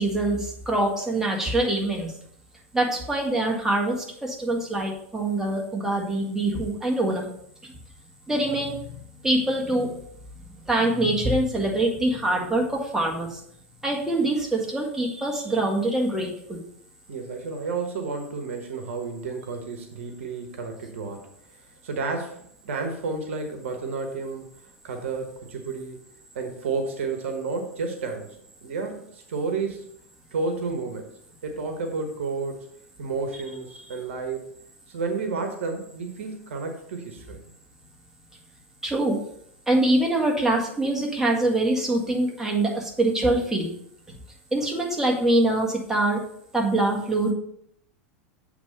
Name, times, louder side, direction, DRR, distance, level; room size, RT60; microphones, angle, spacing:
voice 1, 0.0-2.1 2.7-7.3 7.6-7.7 8.3-8.8 9.2-10.0 10.7-13.4 13.8-16.6 38.8-39.2 39.7-43.7 44.5-46.2 46.5-47.3, right 2 dB, 5° right, -2 dB, 1.7 m, -24 dB
voice 2, 17.1-21.3 21.8-24.5 24.8-26.0 26.3-28.4 28.6-29.9 30.3-31.1 31.4-32.7 33.0-34.4 34.9-37.4, right 4 dB, 70° right, 5 dB, 1.1 m, -31 dB
8.0 x 3.4 x 5.1 m, 0.69 s
hypercardioid pair, 90°, 7 cm